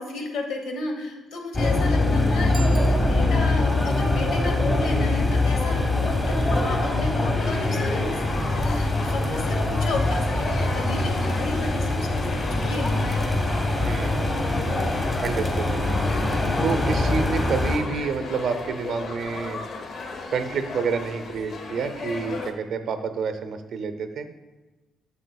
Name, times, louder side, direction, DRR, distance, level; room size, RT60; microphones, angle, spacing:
voice 1, 0.0-13.1, left 2 dB, 80° left, 2 dB, 1.1 m, -33 dB
sound 1, 1.5-17.8, left 2 dB, 25° left, 1.2 m, -23 dB
Bicycle bell, 2.5-3.7, right 3 dB, 25° right, 0.7 m, -43 dB
sound 2, 7.4-22.5, left 4 dB, 60° left, 0.7 m, -36 dB
voice 2, 13.8-14.5 15.2-16.0 16.6-19.6 20.3-24.3, right 5 dB, 65° right, 9 dB, 0.6 m, -29 dB
8.0 x 7.3 x 2.3 m, 1.2 s
cardioid pair, 90°, 0 cm